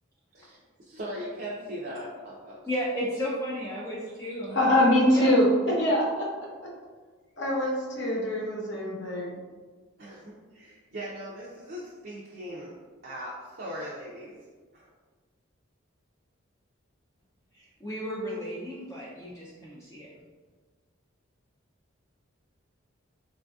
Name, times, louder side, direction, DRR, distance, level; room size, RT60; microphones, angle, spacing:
voice 1, 0.3-2.6 10.0-12.8 13.0-14.3 14.7-14.9, equal, 45° right, -6 dB, 0.5 m, -39 dB
voice 2, 2.7-4.7 5.1-5.4 17.5-20.1, equal, 15° left, -6 dB, 0.3 m, -34 dB
voice 3, 4.5-5.5 5.8-6.3 7.4-9.4, left 1 dB, 55° left, -3 dB, 0.9 m, -23 dB
4.1 x 2.6 x 2.3 m, 1.4 s
head